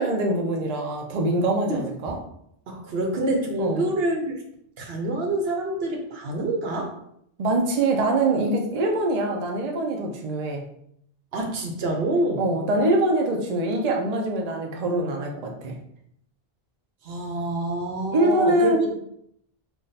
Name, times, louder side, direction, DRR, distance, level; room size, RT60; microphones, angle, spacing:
voice 1, 0.0-2.2 3.6-3.9 7.4-10.6 12.4-15.8 18.1-19.0, right 1 dB, 45° right, 1 dB, 0.6 m, -24 dB
voice 2, 2.7-4.4 4.8-7.0 11.3-12.4 17.0-18.9, right 2 dB, 75° right, 2 dB, 0.9 m, -27 dB
3.5 x 2.3 x 4.0 m, 0.71 s
omnidirectional pair, 1.0 m